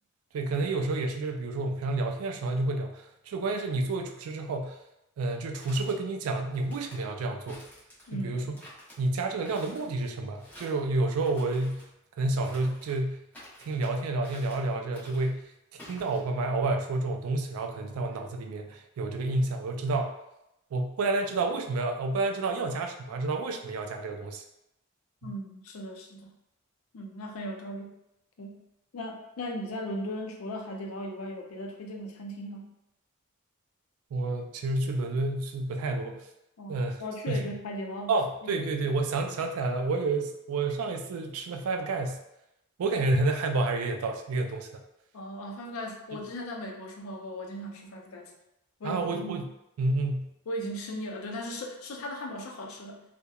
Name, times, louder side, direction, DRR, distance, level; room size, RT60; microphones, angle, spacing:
voice 1, 0.3-4.8 5.2-7.6 8.1-8.5 9.0-11.8 12.2-13.2 13.6-15.4 15.7-20.2 20.7-24.4 25.2-25.3 34.1-36.2 36.7-37.0 37.3-37.5 38.1-42.2 42.8-44.8 48.8-49.4 49.8-50.3, right 2 dB, 90° right, 4 dB, 0.3 m, -29 dB
sound 1, 5.3-5.9 6.5-7.0 7.5-8.2 8.5-9.0 9.4-9.9 10.4-10.8 11.2-11.9 12.4-13.0 13.3-13.9 14.2-14.7 14.9-15.3 15.8-16.2, equal, 10° left, 0.7 m, -50 dB
voice 2, 8.1-8.6 25.2-26.3 26.9-28.0 28.4-28.6 28.9-32.7 36.6-38.1 38.4-38.5 45.1-48.3 48.8-49.5 50.5-53.0, equal, 75° left, 2 dB, 0.4 m, -37 dB
2.8 x 2.1 x 2.3 m, 0.86 s
head